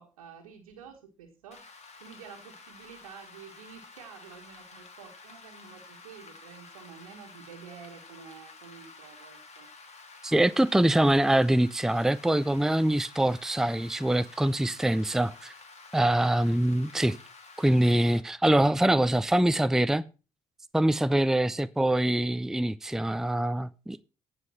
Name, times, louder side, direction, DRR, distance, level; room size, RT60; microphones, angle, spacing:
voice 1, 0.0-1.7 2.0-9.7 21.1-21.6, right 7 dB, 90° right, 1.5 m, -49 dB
Rain, 1.5-18.2, left 4 dB, 40° left, 3.1 m, -50 dB
voice 2, 10.2-15.5 15.9-17.2 17.6-20.0 20.7-24.0, right 1 dB, 5° right, 0.6 m, -24 dB
15.5 x 5.2 x 5.7 m
hypercardioid pair, 45°, 17 cm